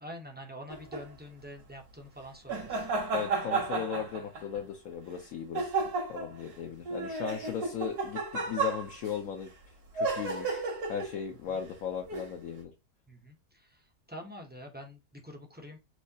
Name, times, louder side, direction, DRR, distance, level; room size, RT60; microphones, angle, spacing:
voice 1, 0.0-2.8 13.1-13.3 14.1-15.8, equal, 10° right, 0.5 m, -45 dB
sound 1, 0.7-1.0 2.5-4.6 5.5-6.4 6.9-9.1 10.0-11.2 12.1-12.3, right 3 dB, 65° right, 1.9 m, -32 dB
voice 2, 3.1-5.7 6.1-9.5 9.9-10.6 10.9-12.7, left 8 dB, 65° left, 1.1 m, -37 dB
6.3 x 2.8 x 2.7 m
omnidirectional pair, 1.8 m